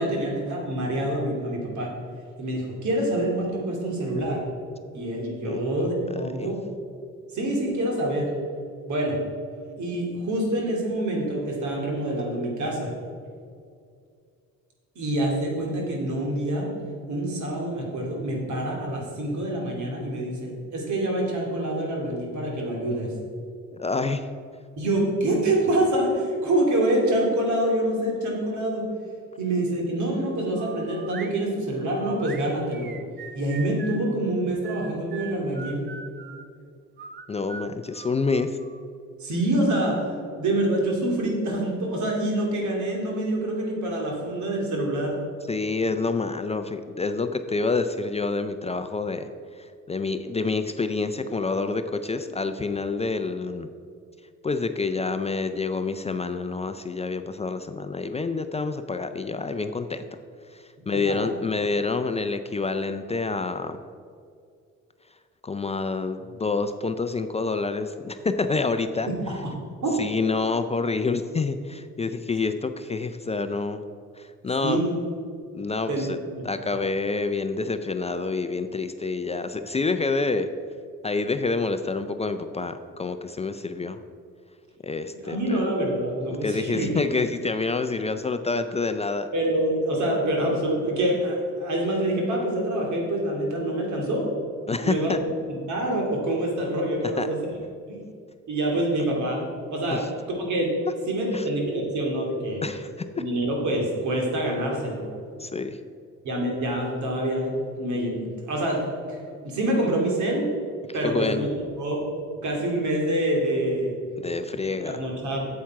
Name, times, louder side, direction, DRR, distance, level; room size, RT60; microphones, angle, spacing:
voice 1, 0.0-1.9 2.4-4.4 4.9-6.6 7.3-8.3 8.9-9.2 9.8-12.9 15.0-16.7 17.1-23.1 24.8-28.8 29.4-32.9 33.3-35.9 39.2-40.0 40.4-45.1 60.9-61.2 69.3-69.5 69.8-70.0 74.6-74.9 75.9-76.1 76.3-76.5 85.2-86.9 89.3-94.3 94.8-95.1 95.5-97.4 97.9-98.0 98.5-99.4 99.7-100.1 100.4-100.7 101.1-102.6 103.2-105.0 106.2-108.8 109.1-109.2 109.4-110.5 110.9-111.5 111.8-112.0 112.4-113.9 114.8-115.5, right 1 dB, 70° right, 0 dB, 2.5 m, -26 dB
voice 2, 5.4-5.9 6.2-6.5 23.7-24.3 37.3-38.6 45.5-49.3 49.5-53.7 54.4-60.1 60.5-63.8 65.4-69.1 70.0-73.8 74.2-74.8 75.5-76.2 76.4-80.5 81.0-84.0 84.8-85.7 86.4-89.3 94.7-95.2 97.2-97.3 99.9-100.0 101.3-101.5 102.6-102.9 105.4-105.8 111.0-111.5 114.2-115.0, left 4 dB, 20° left, 9 dB, 0.4 m, -27 dB
sound 1, 30.5-31.4 32.0-34.1 34.6-36.5 37.0-38.8, right 5 dB, 35° right, 0.7 m, -41 dB
8.5 x 7.5 x 4.7 m, 2.3 s
cardioid pair, 90°, 30 cm